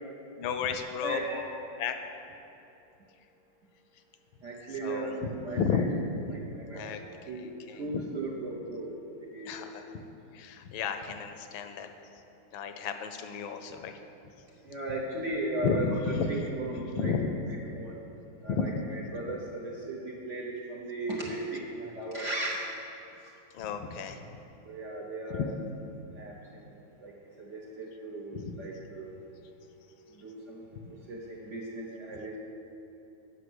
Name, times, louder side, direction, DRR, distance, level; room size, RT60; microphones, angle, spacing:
voice 1, 0.4-1.2 1.8-1.9 4.7-5.9 6.3-6.4 6.7-8.0 9.4-9.9 10.3-11.9 12.5-14.0 15.6-16.3 16.8-17.3 18.5-18.7 23.5-24.3 25.3-25.5 28.3-28.5 30.7-30.9, left 6 dB, 80° left, 8 dB, 1.4 m, -33 dB
voice 2, 1.0-1.5 4.4-5.9 6.3-9.0 9.2-9.7 14.6-17.1 17.5-18.0 18.4-22.6 24.6-25.4 26.2-26.6 27.0-27.1 27.4-29.1 30.2-30.6 31.1-32.4, right 2 dB, 55° right, -3 dB, 0.9 m, -37 dB
8.1 x 5.7 x 6.1 m, 2.9 s
omnidirectional pair, 2.2 m